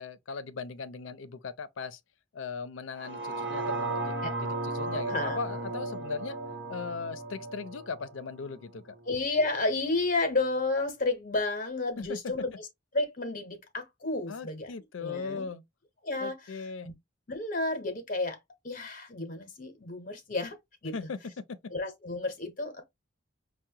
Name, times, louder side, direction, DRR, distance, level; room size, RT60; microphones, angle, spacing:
voice 1, 0.0-2.0 2.3-6.4 6.7-8.9 12.0-12.2 14.3-15.6 16.2-16.9 20.9-21.6, left 5 dB, 85° left, 0.5 m, -38 dB
sound 1, 2.9-9.1 9.5-9.6, right 2 dB, 65° right, 1.0 m, -35 dB
voice 2, 5.1-5.4 9.1-12.7 12.9-14.7 15.0-15.5 16.0-16.9 17.3-18.4 18.6-20.6 20.8-20.9 21.7-22.8, left 2 dB, 45° left, 0.8 m, -31 dB
5.6 x 2.1 x 2.7 m
head